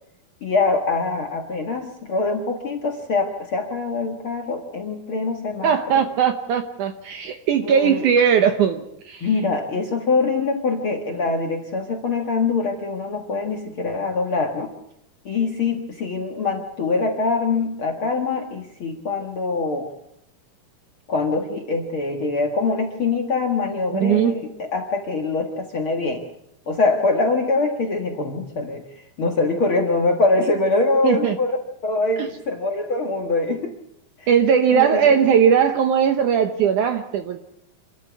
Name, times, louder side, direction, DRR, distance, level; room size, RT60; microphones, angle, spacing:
voice 1, 0.4-6.0 7.6-8.1 9.2-14.7 15.3-19.9 21.1-26.2 26.7-31.6 31.8-33.7 34.2-34.3 34.7-35.2, left 3 dB, 50° left, 2 dB, 1.8 m, -23 dB
voice 2, 5.6-9.3 23.9-24.3 31.0-31.4 32.2-32.3 34.3-37.4, right 7 dB, 70° right, 7 dB, 2.0 m, -19 dB
26.5 x 13.5 x 8.3 m, 0.80 s
omnidirectional pair, 4.5 m